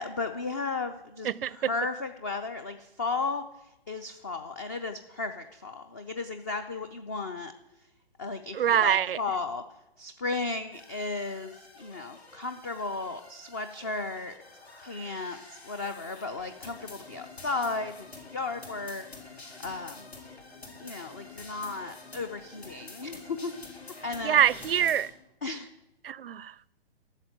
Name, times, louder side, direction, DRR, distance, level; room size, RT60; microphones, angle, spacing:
voice 1, 0.0-3.4 3.9-7.5 8.2-9.6 10.0-14.4 14.8-20.1 20.8-23.5 24.0-24.4 25.4-25.7, left 3 dB, 20° left, 9 dB, 0.3 m, -35 dB
voice 2, 1.2-1.6 8.5-9.2 24.2-25.1 26.0-26.5, right 9 dB, 65° right, 24 dB, 0.5 m, -24 dB
sound 1, 10.7-25.1, left 3 dB, 85° left, 4.7 m, -48 dB
11.5 x 7.4 x 9.0 m, 0.92 s
figure-of-eight pair, 130°, 31 cm